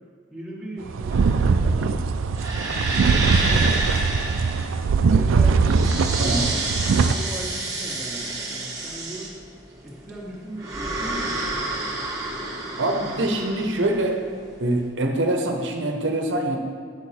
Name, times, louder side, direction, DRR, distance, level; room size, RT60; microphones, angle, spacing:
voice 1, 0.3-2.0 3.1-4.0 5.0-9.4 9.8-11.6, right 1 dB, ahead, -6 dB, 1.3 m, -38 dB
sound 1, 0.9-7.1, right 4 dB, 90° right, 0.4 m, -21 dB
sound 2, 1.1-14.8, right 2 dB, 20° right, 1.1 m, -29 dB
voice 2, 12.8-14.2 14.6-16.6, right 1 dB, 65° right, 3 dB, 0.8 m, -24 dB
9.1 x 6.5 x 4.2 m, 2.1 s
head